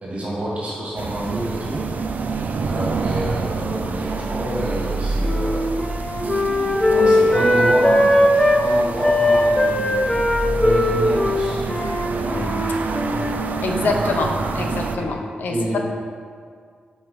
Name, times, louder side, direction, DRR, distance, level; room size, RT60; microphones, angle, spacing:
voice 1, 0.0-1.8 2.6-5.7 6.9-8.1 8.6-10.1 10.6-11.6 12.1-12.6 15.0-15.1 15.5-15.8, right 1 dB, 45° right, -5 dB, 1.6 m, -28 dB
sound 1, 1.0-15.0, right 4 dB, 60° right, 0.4 m, -27 dB
Wind instrument woodwind instrument, 4.7-8.6 9.0-13.4, left 1 dB, 20° left, 0.7 m, -19 dB
voice 2, 13.6-15.8, left 3 dB, 85° left, 2 dB, 0.7 m, -25 dB
6.1 x 4.5 x 4.7 m, 2.1 s
wide cardioid pair, 125°, 3 cm